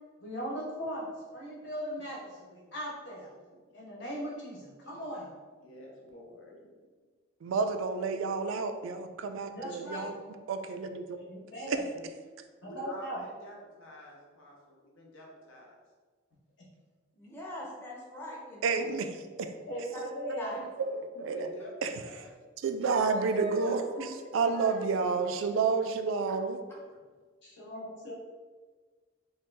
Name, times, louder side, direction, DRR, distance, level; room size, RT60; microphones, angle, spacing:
voice 1, 0.2-3.3 3.7-5.3 9.5-10.1 11.3-11.8 12.6-13.2 19.7-20.6 22.9-23.0 23.9-24.1 27.6-28.1, equal, 65° left, -5 dB, 1.1 m, -38 dB
voice 2, 5.6-6.6 11.9-12.1 12.7-15.8 21.1-22.3, equal, 85° left, -2 dB, 0.8 m, -49 dB
voice 3, 7.4-10.2 10.5-11.2 11.7-11.8 18.6-19.1 20.8-21.5 21.8-21.9 22.6-23.8 24.3-26.6, right 4 dB, 85° right, 7 dB, 0.3 m, -30 dB
voice 4, 17.2-18.9 19.9-20.0 20.4-20.6 23.1-23.9 24.5-24.8, right 1 dB, 10° left, -4 dB, 0.6 m, -41 dB
3.1 x 2.4 x 3.2 m, 1.4 s
head